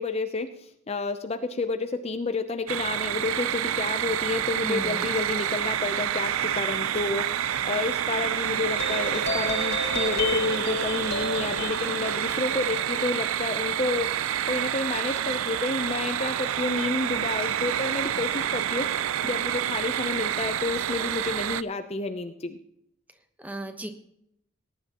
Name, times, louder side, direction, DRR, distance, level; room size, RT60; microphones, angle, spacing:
voice 1, 0.0-18.9 19.2-22.6, left 3 dB, 30° left, 8 dB, 0.6 m, -30 dB
sound 1, 2.7-21.6, right 10 dB, 80° right, 0.4 m, -28 dB
voice 2, 4.6-5.1 23.4-23.9, right 1 dB, 10° right, 6 dB, 1.1 m, -35 dB
sound 2, 8.7-15.5, left 2 dB, 55° left, 1.8 m, -32 dB
19.0 x 10.5 x 3.0 m, 0.74 s
head